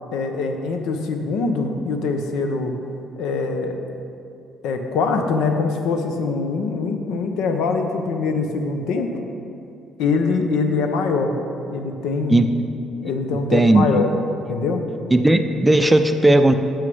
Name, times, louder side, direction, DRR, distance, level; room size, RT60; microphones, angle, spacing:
voice 1, 0.1-2.7 3.2-3.8 4.6-9.1 10.0-11.4 11.7-12.4 13.0-14.1 14.5-14.8, left 4 dB, 85° left, 5 dB, 0.7 m, -23 dB
voice 2, 13.5-14.0 15.1-16.6, right 1 dB, 10° right, 7 dB, 0.4 m, -16 dB
6.5 x 6.3 x 5.4 m, 2.6 s
cardioid pair, 120°, 0 cm